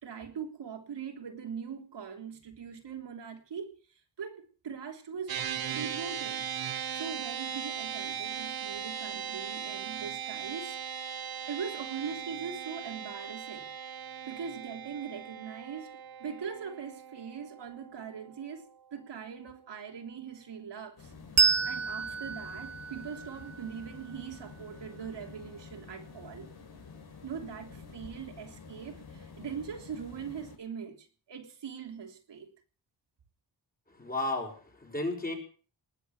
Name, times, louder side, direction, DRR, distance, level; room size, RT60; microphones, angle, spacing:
voice 1, 0.0-6.5 6.9-10.8 11.5-13.7 14.3-15.9 16.2-18.7 18.9-21.1 21.7-26.5 27.2-32.5, right 7 dB, 80° right, 3 dB, 3.4 m, -41 dB
sound 1, 5.3-18.8, right 8 dB, 55° right, 1.1 m, -39 dB
sound 2, 21.0-30.6, left 5 dB, 60° left, 4.7 m, -49 dB
Bell, 21.4-24.4, right 5 dB, 35° right, 0.8 m, -30 dB
voice 2, 33.9-35.4, left 2 dB, 20° left, 2 dB, 5.0 m, -33 dB
20.0 x 8.1 x 8.8 m, 0.40 s
wide cardioid pair, 160°, 42 cm